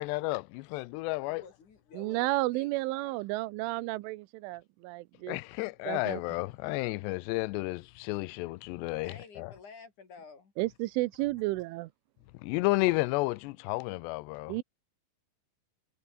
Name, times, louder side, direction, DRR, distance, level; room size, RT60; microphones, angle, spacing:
voice 1, 0.0-1.4 5.3-9.5 12.4-14.6, left 22 dB, 80° left, 2.6 m, -32 dB
voice 2, 1.2-3.4 9.0-10.5, left 5 dB, 45° left, 4.6 m, -52 dB
voice 3, 2.0-5.4 5.9-6.2 10.6-11.9 14.5-14.6, right 20 dB, 85° right, 3.3 m, -32 dB
omnidirectional pair, 5.5 m